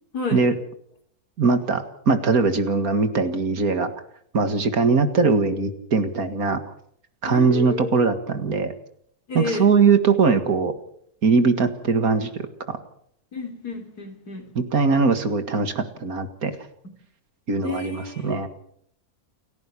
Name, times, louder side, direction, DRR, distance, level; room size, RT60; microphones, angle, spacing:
voice 1, 0.1-0.4 7.3-8.0 9.3-9.7 13.3-14.5 17.6-18.5, left 3 dB, 75° left, 4 dB, 4.3 m, -31 dB
voice 2, 1.4-3.9 4.3-6.6 7.2-8.7 9.3-10.7 11.2-12.8 14.6-16.5 17.5-18.5, right 4 dB, 65° right, 9 dB, 2.3 m, -21 dB
29.5 x 11.0 x 8.3 m, 0.67 s
omnidirectional pair, 1.7 m